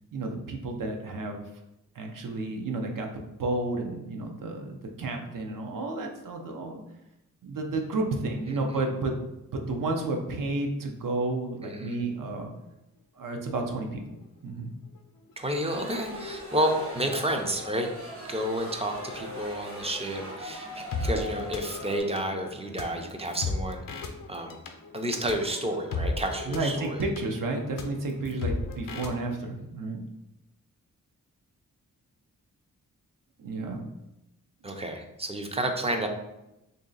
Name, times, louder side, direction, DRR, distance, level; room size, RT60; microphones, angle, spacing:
voice 1, 0.1-1.4 1.9-6.8 7.4-9.2 9.5-12.5 13.1-14.2 14.4-14.7 26.5-30.0 33.4-33.8 34.6-34.7, right 2 dB, 75° right, 2 dB, 0.6 m, -31 dB
voice 2, 11.6-12.0 15.4-17.9 18.3-24.0 24.3-24.6 24.9-27.0 34.6-36.1, right 1 dB, 20° right, 4 dB, 0.4 m, -30 dB
sound 1, 13.7-13.8 14.0-14.5 14.9-29.1, left 3 dB, 80° left, 0.6 m, -37 dB
sound 2, 15.6-22.0, equal, 40° right, 1.0 m, -40 dB
3.1 x 2.7 x 3.8 m, 0.91 s
wide cardioid pair, 145°, 33 cm